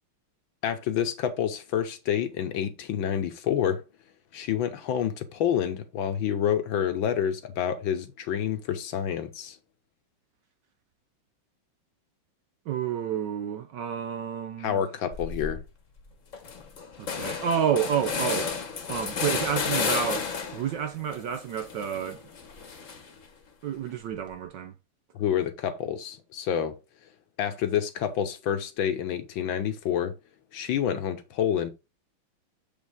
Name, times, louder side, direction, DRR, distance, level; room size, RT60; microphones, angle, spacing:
voice 1, 0.6-3.8 4.3-9.6 14.6-15.6 25.1-26.8 27.4-30.1 30.5-31.7, left 9 dB, 65° left, 1.6 m, -28 dB
voice 2, 12.7-14.8 17.0-18.6 18.9-22.2 23.6-24.7, right 8 dB, 70° right, 1.1 m, -30 dB
sound 1, 15.1-15.6 16.0-16.1 16.3-20.7 21.1-23.2, left 5 dB, 45° left, 1.3 m, -32 dB
7.1 x 5.3 x 3.6 m
omnidirectional pair, 2.4 m